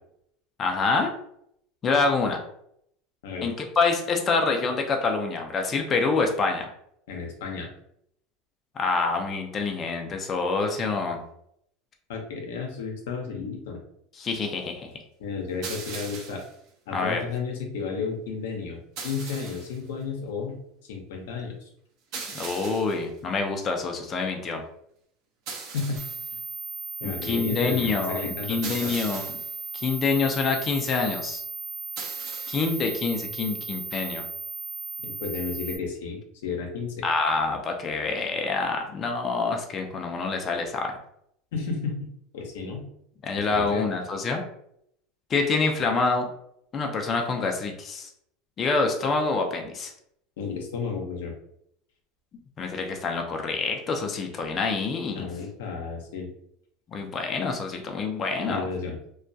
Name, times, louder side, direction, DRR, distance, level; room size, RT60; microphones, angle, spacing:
voice 1, 0.6-1.1 1.8-2.4 3.4-6.7 8.8-11.2 14.2-14.9 16.9-17.2 22.3-24.6 27.0-29.3 29.7-31.4 32.5-34.2 37.0-41.0 43.2-44.4 45.3-46.3 46.7-48.1 48.6-49.9 52.6-55.3 56.9-58.7, left 4 dB, 30° left, 3 dB, 0.4 m, -26 dB
voice 2, 7.1-7.7 12.1-13.8 15.2-16.4 16.9-18.8 19.0-20.6 20.9-21.7 25.7-26.0 27.0-28.9 35.0-37.1 41.5-42.1 42.3-42.8 43.3-43.8 50.4-51.3 55.1-56.3 58.4-59.0, left 5 dB, 85° left, 2 dB, 0.6 m, -32 dB
sound 1, 15.6-16.5 19.0-19.8 22.1-23.0 25.5-26.3 28.6-29.5 32.0-32.8, right 5 dB, 60° right, 0.6 m, -39 dB
sound 2, 26.0-35.8, right 4 dB, 15° right, 0.6 m, -36 dB
2.2 x 2.1 x 2.6 m, 0.73 s
supercardioid pair, 120°, 0 cm